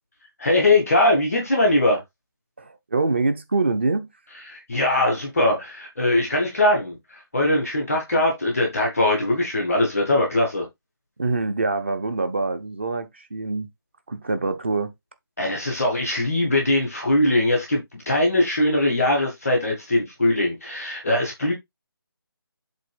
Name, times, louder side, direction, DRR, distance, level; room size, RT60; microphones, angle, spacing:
voice 1, 0.4-2.0 4.5-10.7 15.4-21.5, left 1 dB, 5° left, 0.4 m, -21 dB
voice 2, 2.6-4.1 11.2-13.7 14.1-14.9, right 3 dB, 30° right, 0.8 m, -25 dB
7.6 x 3.1 x 5.0 m
figure-of-eight pair, 175°, 13 cm